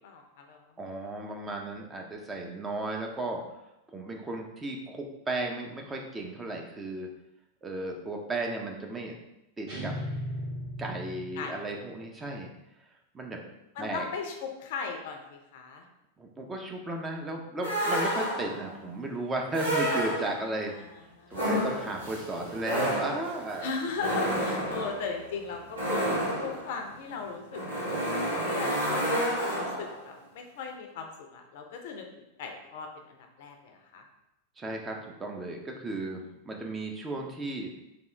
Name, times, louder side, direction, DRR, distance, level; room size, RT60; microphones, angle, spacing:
voice 1, 0.0-0.6 11.4-11.7 13.8-15.8 20.7-20.9 21.2-21.5 23.6-26.0 26.4-29.2 29.6-34.0, left 5 dB, 55° left, 4 dB, 0.5 m, -38 dB
voice 2, 0.8-3.4 3.9-7.1 7.6-9.1 9.6-10.0 10.8-12.5 13.1-13.4 13.8-14.1 16.2-20.7 21.3-23.7 34.6-37.7, right 2 dB, 15° right, 1 dB, 0.5 m, -35 dB
sound 1, 9.7-11.7, equal, 45° right, 1.4 m, -36 dB
sound 2, 17.6-18.7 19.5-20.6 21.3-30.0, equal, 85° right, 1.1 m, -30 dB
3.5 x 2.4 x 3.2 m, 0.90 s
figure-of-eight pair, 90°, 0 cm